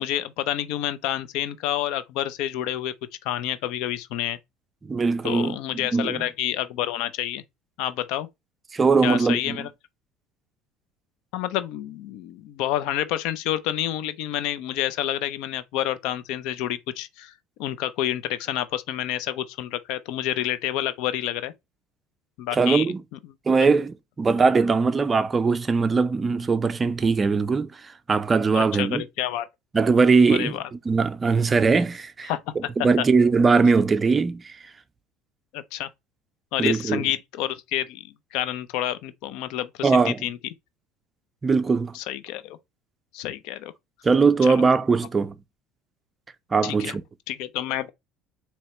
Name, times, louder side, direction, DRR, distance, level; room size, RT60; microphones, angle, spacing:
voice 1, 0.0-2.9 3.2-4.4 5.2-7.4 7.8-8.3 9.0-9.7 11.3-17.3 17.6-21.5 22.4-22.9 28.5-29.5 30.3-30.6 32.3-32.7 35.5-35.9 36.5-40.4 41.9-42.6 43.1-43.7 44.4-44.6 46.6-47.0 47.3-47.9, left 12 dB, 70° left, 0.5 m, -29 dB
voice 2, 4.8-5.6 5.9-6.2 8.7-9.6 22.5-23.0 23.5-29.0 29.7-32.3 32.8-34.6 36.6-37.1 39.8-40.2 41.4-42.0 44.0-45.3 46.5-47.0, right 4 dB, 20° right, 0.4 m, -21 dB
4.2 x 3.0 x 3.1 m
cardioid pair, 125°, 0 cm